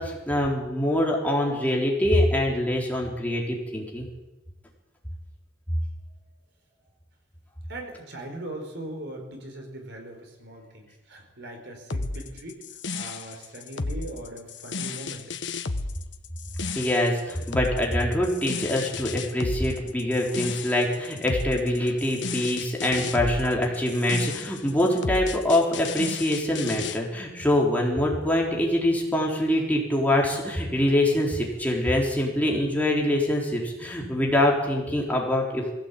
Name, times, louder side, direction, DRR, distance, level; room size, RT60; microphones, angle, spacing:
voice 1, 0.0-4.1 16.7-35.7, left 1 dB, 10° left, -2 dB, 4.1 m, -24 dB
voice 2, 7.7-12.6 12.9-15.3, right 1 dB, 65° right, 3 dB, 4.9 m, -40 dB
sound 1, 11.9-27.0, left 3 dB, 70° left, 1.2 m, -33 dB
21.0 x 16.0 x 8.5 m, 1.0 s
head